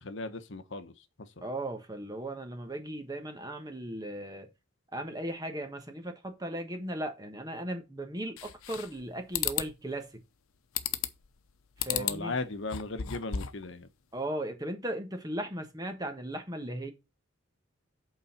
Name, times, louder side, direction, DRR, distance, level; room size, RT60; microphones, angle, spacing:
voice 1, 0.0-1.4 11.9-13.9, left 3 dB, 65° left, 1.0 m, -37 dB
voice 2, 1.4-4.5 4.9-10.1 11.8-12.3 14.1-16.9, right 1 dB, 20° right, 1.3 m, -37 dB
sound 1, 8.4-9.0 9.3-9.7 10.8-11.3 11.8-12.2 12.6-13.6, left 10 dB, 90° left, 0.7 m, -33 dB
8.3 x 4.0 x 5.8 m
head